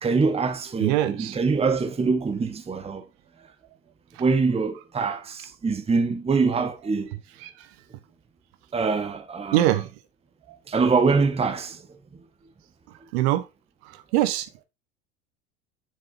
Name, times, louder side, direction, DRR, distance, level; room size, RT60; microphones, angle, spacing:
voice 1, 0.0-3.0 4.2-7.1 8.7-9.8 10.7-11.9, right 4 dB, 15° right, 1.1 m, -24 dB
voice 2, 0.8-1.4 7.4-7.5 9.5-9.9 13.1-13.4 14.1-14.6, right 14 dB, 65° right, 1.1 m, -22 dB
7.0 x 6.7 x 2.7 m
hypercardioid pair, 80°, 35 cm